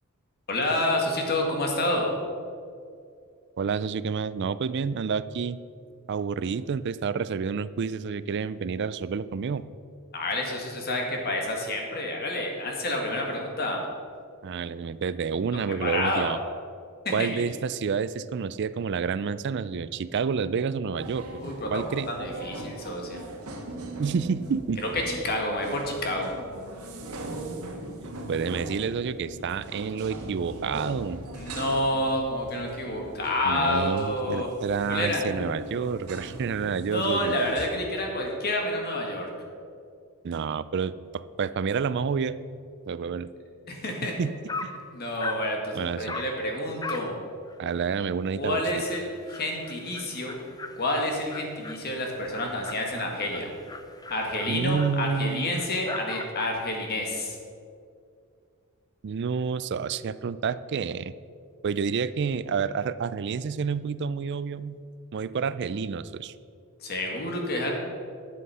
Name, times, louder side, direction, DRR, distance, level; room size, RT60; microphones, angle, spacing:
voice 1, 0.5-2.1 10.1-13.8 15.8-16.3 17.1-17.3 21.3-23.2 24.8-26.3 31.4-34.5 34.9-35.3 36.9-39.3 43.7-44.2 44.9-47.1 48.4-50.4 50.8-53.5 54.1-57.4 66.8-67.7, left 1 dB, 45° left, 1 dB, 1.8 m, -29 dB
voice 2, 3.6-5.6 6.1-9.6 14.4-16.4 17.1-21.3 21.7-22.1 24.0-24.8 28.0-31.2 33.4-37.4 40.2-42.4 42.9-43.3 44.2-44.3 45.7-46.2 47.6-48.6 54.5-55.6 59.0-61.1 61.6-64.8 65.1-66.3, right 6 dB, 50° right, 15 dB, 0.4 m, -29 dB
sound 1, 21.0-37.7, right 1 dB, 80° right, 1.5 m, -40 dB
Dog, 44.1-44.2 44.5-44.8 45.2-45.5 46.1-46.4 46.8-47.1 47.5-47.6 48.0-48.1 48.4-48.5 48.8-56.7, left 3 dB, 15° left, 0.6 m, -39 dB
11.5 x 7.6 x 5.6 m, 2.3 s
head